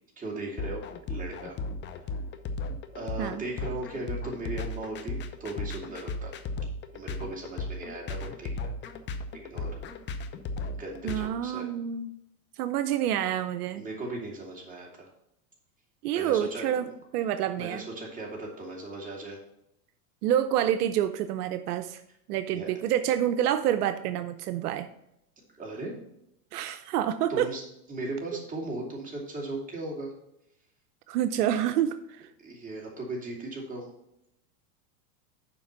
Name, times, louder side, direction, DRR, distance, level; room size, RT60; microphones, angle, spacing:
voice 1, 0.2-0.8 1.1-1.6 2.9-6.4 6.9-8.7 9.3-9.7 10.7-11.7 13.8-15.1 16.1-16.9 17.6-19.4 22.5-22.7 25.5-25.9 27.3-27.6 27.9-30.1 32.4-33.9, right 2 dB, 15° right, -2 dB, 2.8 m, -37 dB
sound 1, 0.6-11.3, left 3 dB, 25° left, 0.6 m, -35 dB
voice 2, 11.0-12.1 12.6-13.8 16.0-16.9 17.1-17.8 20.2-22.0 22.3-24.9 26.5-27.5 31.1-32.3, right 11 dB, 75° right, 10 dB, 0.7 m, -28 dB
7.1 x 5.2 x 6.7 m, 0.80 s
supercardioid pair, 125°, 46 cm